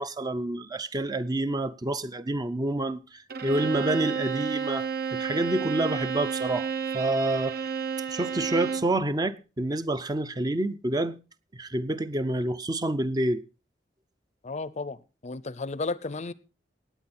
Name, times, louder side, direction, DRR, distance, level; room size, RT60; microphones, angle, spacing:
voice 1, 0.0-6.7 6.9-7.6 8.1-11.2 11.5-13.4, right 2 dB, 20° right, 0.6 m, -28 dB
Bowed string instrument, 3.3-9.0, right 6 dB, 60° right, 1.1 m, -31 dB
voice 2, 14.4-16.3, left 3 dB, 40° left, 0.6 m, -33 dB
18.5 x 8.7 x 4.2 m
head